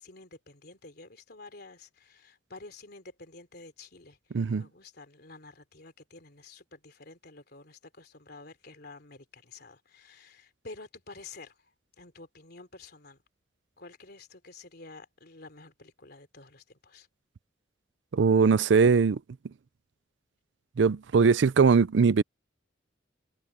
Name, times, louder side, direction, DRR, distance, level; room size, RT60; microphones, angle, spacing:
voice 1, 0.0-4.2 4.6-11.5 12.0-13.2 13.8-17.1, left 3 dB, 60° left, 3.3 m, -49 dB
voice 2, 4.3-4.7 18.1-19.2 20.8-22.2, right 5 dB, 70° right, 0.5 m, -21 dB
head